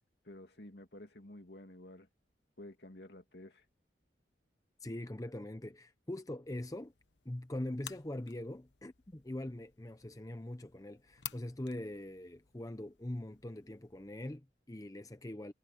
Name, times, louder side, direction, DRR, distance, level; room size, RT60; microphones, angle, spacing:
voice 1, 0.2-2.1 2.6-3.6, left 1 dB, 65° left, 2.7 m, -51 dB
voice 2, 4.8-6.9 7.2-15.5, left 1 dB, 20° left, 0.7 m, -42 dB
sound 1, 6.4-14.4, left 11 dB, 80° left, 1.1 m, -54 dB
head